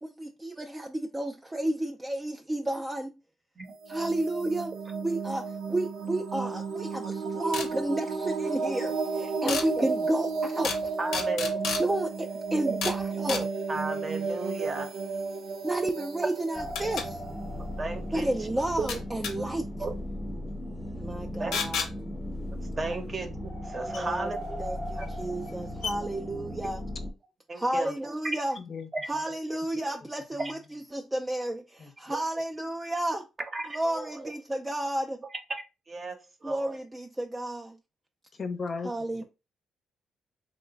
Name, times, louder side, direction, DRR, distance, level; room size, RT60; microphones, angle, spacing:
voice 1, 0.0-3.2 3.9-10.7 11.6-13.5 15.6-17.2 18.1-19.7 20.9-21.9 22.8-23.0 23.8-26.8 27.6-28.6 29.1-33.3 33.7-35.2 36.4-37.8 38.8-39.2, right 1 dB, 15° right, 0.3 m, -32 dB
sound 1, 3.7-18.4, right 4 dB, 85° right, 0.7 m, -33 dB
sound 2, 7.5-7.7 9.5-9.7 10.6-10.8 11.1-11.8 12.8-13.0 13.3-13.4 15.7-15.8 16.7-17.1 18.9-19.3 21.5-21.9 23.9-24.0 25.0-25.1 25.5-25.6 25.8-25.9, left 5 dB, 85° left, 0.7 m, -31 dB
voice 2, 11.0-11.6 12.7-12.8 13.7-14.9 17.8-18.3 19.8-19.9 21.4-21.6 22.7-24.4 25.0-25.1 27.5-28.0 28.2-28.4 28.9-29.3 30.4-30.5 33.5-34.1 35.9-36.7, right 3 dB, 35° right, 0.7 m, -34 dB
sound 3, 16.5-27.1, equal, 5° left, 0.8 m, -37 dB
voice 3, 28.6-28.9 31.8-31.9 38.4-38.9, left 4 dB, 40° left, 0.6 m, -34 dB
3.0 x 2.1 x 3.9 m
cardioid pair, 90°, 0 cm